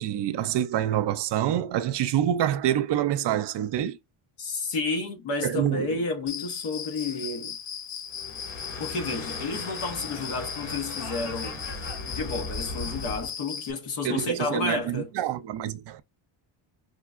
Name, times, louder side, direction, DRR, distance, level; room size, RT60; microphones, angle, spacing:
voice 1, 0.0-4.0 5.4-6.0 14.0-16.0, right 11 dB, 60° right, 0.5 m, -26 dB
voice 2, 4.4-7.6 8.8-11.6 12.0-15.1, left 3 dB, 85° left, 1.1 m, -31 dB
Cricket, 6.3-13.7, left 7 dB, 40° left, 0.4 m, -38 dB
sound 1, 8.1-13.3, left 2 dB, 60° left, 1.9 m, -37 dB
4.9 x 2.2 x 2.4 m
cardioid pair, 105°, 49 cm